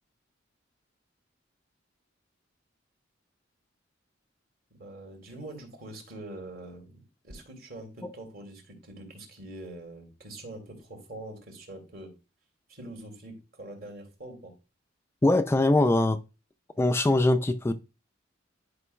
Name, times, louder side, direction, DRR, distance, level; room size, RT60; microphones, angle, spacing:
voice 1, 4.7-12.1 12.7-14.5, right 1 dB, 50° right, 2.4 m, -44 dB
voice 2, 15.2-16.2 16.8-17.7, left 2 dB, 15° left, 0.3 m, -22 dB
11.0 x 5.2 x 2.3 m
head